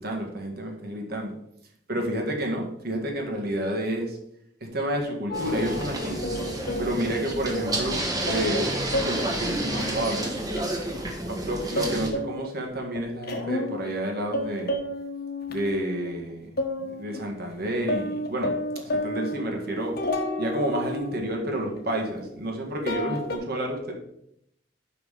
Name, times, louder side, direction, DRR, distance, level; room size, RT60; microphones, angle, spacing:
voice 1, 0.0-1.3 1.9-4.2 4.7-6.2 6.8-8.7 9.0-10.3 11.3-14.8 15.5-16.5 16.8-19.9 20.4-23.9, right 1 dB, 60° right, 1 dB, 1.9 m, -30 dB
sound 1, 5.3-7.9 8.2-8.6 8.9-9.2 9.7-11.0 11.2-12.6 13.0-14.1 14.3-16.3 16.6-17.2 17.5-17.6 17.9-22.5 22.9-23.4, left 1 dB, 60° left, 1.3 m, -31 dB
sound 2, 5.3-12.1, right 1 dB, 20° right, 1.3 m, -30 dB
5.8 x 5.7 x 6.6 m, 0.75 s
head